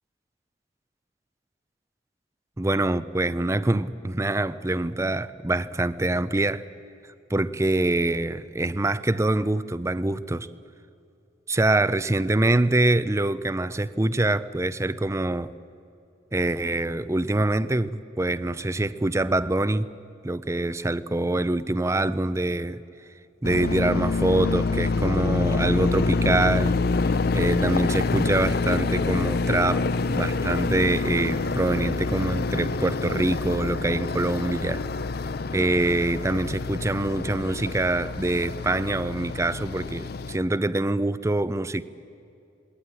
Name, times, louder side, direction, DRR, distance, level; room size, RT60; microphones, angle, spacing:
voice 1, 2.6-6.7 7.3-10.5 11.5-15.5 16.3-19.9 20.2-22.8 23.4-26.7 27.3-34.8 35.5-41.8, right 2 dB, 15° right, 14 dB, 0.5 m, -25 dB
sound 1, 23.4-40.4, left 3 dB, 55° left, 0.5 m, -26 dB
20.5 x 18.5 x 9.9 m, 2.6 s
head